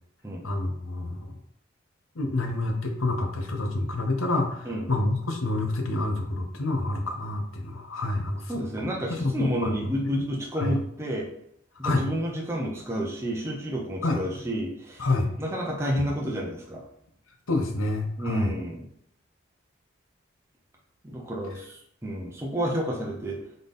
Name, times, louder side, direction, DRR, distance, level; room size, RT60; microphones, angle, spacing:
voice 1, 0.4-1.3 2.2-8.5 8.8-8.9 9.2-10.2 10.6-10.8 11.8-12.0 14.0-14.2 15.0-15.3 17.5-18.5, left 2 dB, 90° left, 3 dB, 0.8 m, -28 dB
voice 2, 8.5-11.3 11.8-15.1 15.4-16.8 18.2-18.9 21.0-23.4, equal, 15° right, -3 dB, 0.7 m, -30 dB
3.9 x 3.8 x 3.6 m, 0.71 s
head